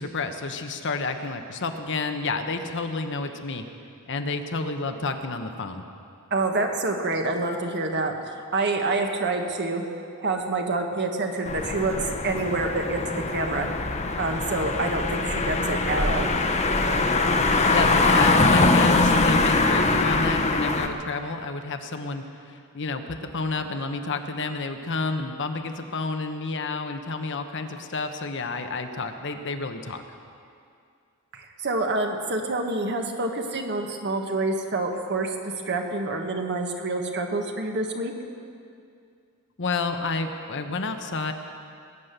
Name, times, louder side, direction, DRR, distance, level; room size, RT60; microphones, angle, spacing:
voice 1, 0.0-3.6 4.1-5.8 17.6-30.0 39.6-41.3, left 3 dB, 55° left, 6 dB, 1.1 m, -30 dB
voice 2, 6.3-9.8 10.2-13.7 14.2-16.3 31.3-38.1, right 2 dB, 50° right, 3 dB, 1.6 m, -27 dB
sound 1, 11.5-20.9, left 3 dB, 30° left, 1.0 m, -22 dB
21.5 x 9.6 x 6.8 m, 2.4 s
head